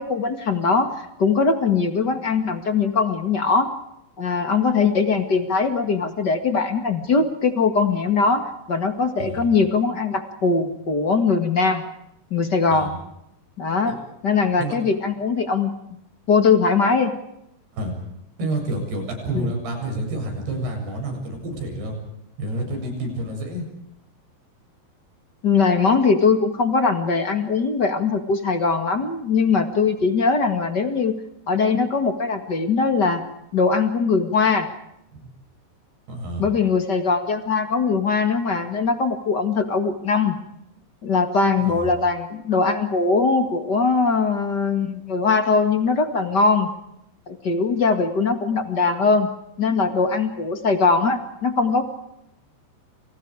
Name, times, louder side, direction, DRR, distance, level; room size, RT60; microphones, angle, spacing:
voice 1, 0.0-3.7 4.2-11.8 12.3-12.9 13.6-14.0 14.2-15.7 16.3-17.1 19.3-19.5 25.4-31.2 31.5-33.2 33.5-34.7 36.4-40.4 41.0-46.7 47.3-49.3 49.6-51.8, left 4 dB, 45° left, 7 dB, 1.4 m, -21 dB
voice 2, 18.4-22.0 22.4-23.7 35.1-35.3 36.1-36.5 41.6-41.9, right 1 dB, 65° right, 3 dB, 9.7 m, -29 dB
29.5 x 29.0 x 5.0 m, 0.81 s
omnidirectional pair, 5.1 m